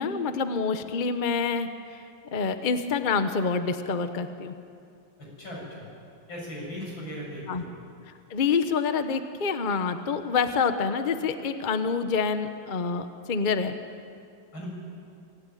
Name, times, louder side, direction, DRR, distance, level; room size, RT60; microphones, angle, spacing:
voice 1, 0.0-2.0 2.3-4.6 7.5-7.6 8.3-13.8, left 5 dB, 35° left, 9 dB, 0.8 m, -27 dB
voice 2, 5.2-5.9 6.3-7.7 14.5-14.7, equal, 85° left, -3 dB, 8.0 m, -38 dB
26.0 x 16.0 x 9.2 m, 2.4 s
omnidirectional pair, 2.1 m